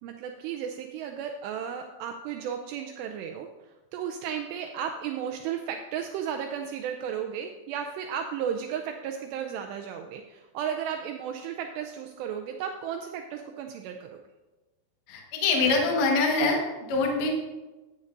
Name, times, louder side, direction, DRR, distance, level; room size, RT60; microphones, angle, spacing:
voice 1, 0.0-14.2, right 8 dB, 85° right, 4 dB, 2.5 m, -34 dB
voice 2, 15.1-16.6 16.9-17.3, left 3 dB, 65° left, 0 dB, 1.7 m, -24 dB
15.0 x 9.5 x 2.6 m, 1.1 s
omnidirectional pair, 5.4 m